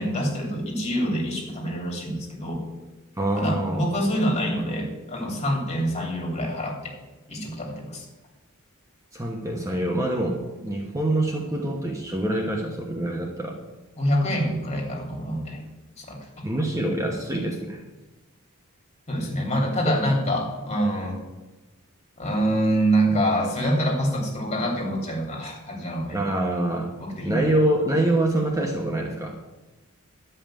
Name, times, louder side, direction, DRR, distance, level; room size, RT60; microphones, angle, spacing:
voice 1, 0.0-2.6 3.4-6.9 7.3-8.0 14.0-15.6 16.0-16.2 19.1-21.2 22.2-26.2 27.0-27.5, equal, 30° left, -1 dB, 3.0 m, -26 dB
voice 2, 3.2-3.8 9.1-13.5 16.4-17.8 19.8-19.9 26.1-26.9 27.2-29.4, right 1 dB, 15° right, 1 dB, 1.1 m, -25 dB
11.5 x 5.6 x 8.9 m, 1.1 s
head